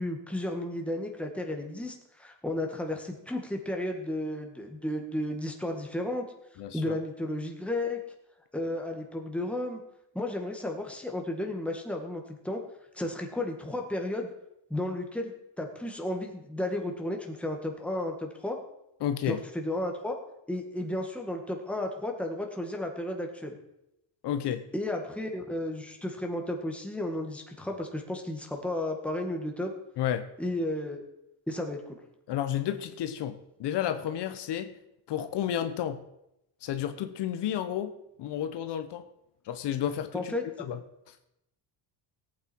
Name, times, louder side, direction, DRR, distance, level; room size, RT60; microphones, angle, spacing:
voice 1, 0.0-6.3 6.7-8.0 8.5-9.8 10.1-12.6 12.9-14.3 14.7-18.6 19.3-20.2 20.5-23.6 24.7-29.7 30.4-31.0 31.5-32.0 40.1-40.4, left 1 dB, 5° left, 2 dB, 1.9 m, -33 dB
voice 2, 6.6-7.0 19.0-19.4 24.2-24.6 30.0-30.3 32.3-34.7 35.1-36.0 36.6-37.9 38.2-39.0 39.5-40.3 40.7-40.8 41.1-41.2, left 10 dB, 70° left, 9 dB, 1.0 m, -31 dB
18.0 x 8.8 x 4.6 m, 0.84 s
cardioid pair, 135°, 43 cm